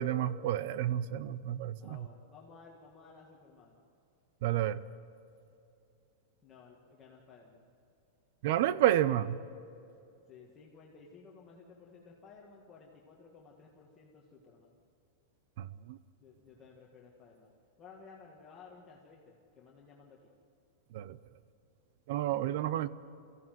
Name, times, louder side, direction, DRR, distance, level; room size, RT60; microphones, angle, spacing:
voice 1, 0.0-2.0 4.4-4.8 8.4-9.4 15.6-16.0 20.9-21.2 22.1-22.9, right 12 dB, 50° right, 17 dB, 0.6 m, -30 dB
voice 2, 1.8-3.8 6.4-7.7 10.3-14.8 16.2-17.5 17.8-20.3, left 5 dB, 20° left, -3 dB, 1.8 m, -56 dB
23.5 x 15.5 x 9.3 m, 2.6 s
supercardioid pair, 165°, 0 cm